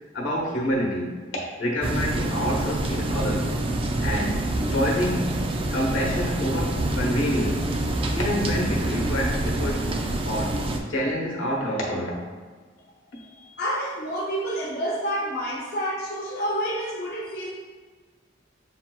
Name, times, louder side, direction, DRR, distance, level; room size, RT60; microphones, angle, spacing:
voice 1, 0.1-3.5 4.0-5.4 5.7-9.8 10.2-10.6 10.9-12.3, equal, 85° left, -2 dB, 1.1 m, -27 dB
sound 1, 1.8-10.8, right 1 dB, 30° right, 0.3 m, -26 dB
voice 2, 13.1-17.5, equal, 50° left, -5 dB, 0.6 m, -29 dB
7.1 x 2.6 x 2.3 m, 1.5 s
head